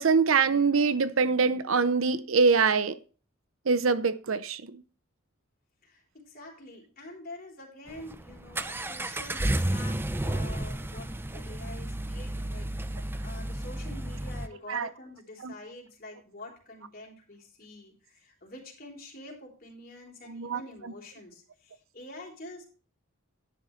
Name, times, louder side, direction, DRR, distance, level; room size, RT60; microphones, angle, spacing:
voice 1, 0.0-2.9 3.7-4.8 14.7-14.9 15.4-15.5 20.3-20.6, right 5 dB, 75° right, 0.7 m, -24 dB
voice 2, 5.8-22.6, left 2 dB, 45° left, 3.6 m, -47 dB
Accelerating revving vroom, 7.9-14.5, right 1 dB, 10° right, 0.5 m, -32 dB
11.0 x 9.5 x 3.2 m
head